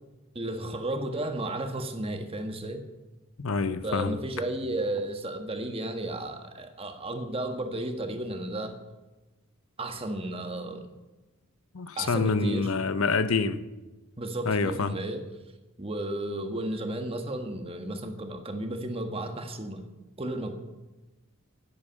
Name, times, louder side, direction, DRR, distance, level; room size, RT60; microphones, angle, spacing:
voice 1, 0.3-2.8 3.8-8.8 9.8-10.9 12.0-12.7 14.2-15.2 15.8-19.9 20.2-20.5, right 1 dB, 25° right, 6 dB, 1.4 m, -33 dB
voice 2, 3.4-4.2 11.7-13.6 14.5-14.9, left 4 dB, 75° left, 13 dB, 0.8 m, -26 dB
11.5 x 8.7 x 8.6 m, 1.1 s
head